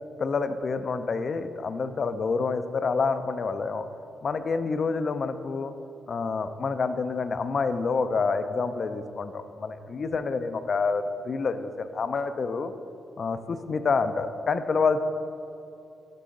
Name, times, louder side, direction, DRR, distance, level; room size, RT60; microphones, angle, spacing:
voice 1, 0.2-3.9 4.2-5.7 6.1-12.7 13.2-15.0, left 4 dB, 55° left, 10 dB, 0.4 m, -28 dB
9.3 x 3.8 x 3.8 m, 2.8 s
supercardioid pair, 50°, 0 cm